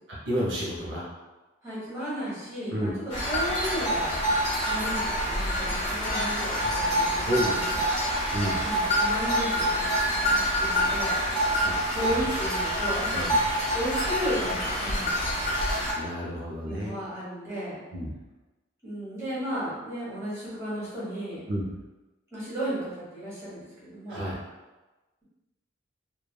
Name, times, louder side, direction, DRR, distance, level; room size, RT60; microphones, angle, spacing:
voice 1, 0.1-1.1 2.7-2.9 7.2-7.8 8.3-8.6 11.5-11.8 12.0-12.2 13.1-13.2 15.9-17.0 17.9-18.1 21.5-21.6 24.1-24.3, equal, 70° right, -5 dB, 0.6 m, -30 dB
voice 2, 1.6-2.9 3.2-4.2 4.6-8.1 8.6-9.9 10.2-11.2 11.9-13.3 13.7-15.1 16.6-17.7 18.8-21.4 22.3-24.2, equal, 15° right, -10 dB, 1.2 m, -34 dB
sound 1, 3.1-15.9, equal, 35° left, 1.1 m, -26 dB
3.1 x 2.2 x 2.3 m, 1.2 s
head